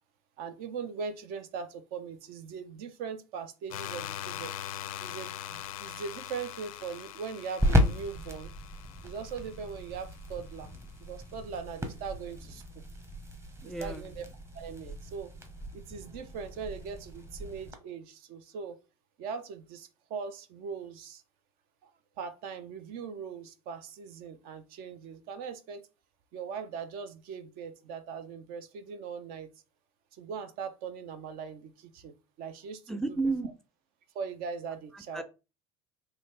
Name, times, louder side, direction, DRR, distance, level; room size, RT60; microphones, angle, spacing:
voice 1, 0.4-4.5 5.0-8.5 9.0-10.7 11.0-12.6 13.6-14.2 14.5-15.3 15.7-18.8 19.2-21.2 21.8-21.9 22.2-25.8 26.3-29.5 30.1-33.0 34.1-35.2, right 6 dB, 55° right, 0.7 m, -40 dB
sound 1, 3.7-10.5, left 11 dB, 75° left, 0.5 m, -42 dB
sound 2, 7.2-17.7, left 1 dB, 15° right, 1.0 m, -35 dB
voice 2, 13.6-14.1 32.9-33.5 34.9-35.2, right 3 dB, ahead, 0.5 m, -32 dB
4.0 x 2.8 x 3.3 m
hypercardioid pair, 75°, 18 cm